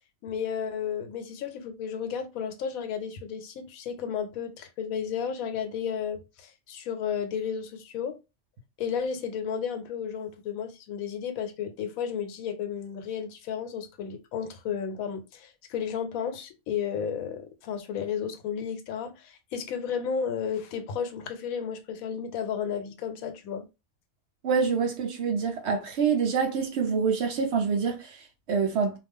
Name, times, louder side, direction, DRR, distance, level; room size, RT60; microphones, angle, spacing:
voice 1, 0.2-8.2 8.8-23.7, left 7 dB, 90° left, 1.0 m, -33 dB
voice 2, 24.4-29.0, right 6 dB, 65° right, 0.7 m, -26 dB
2.4 x 2.2 x 3.4 m
omnidirectional pair, 1.4 m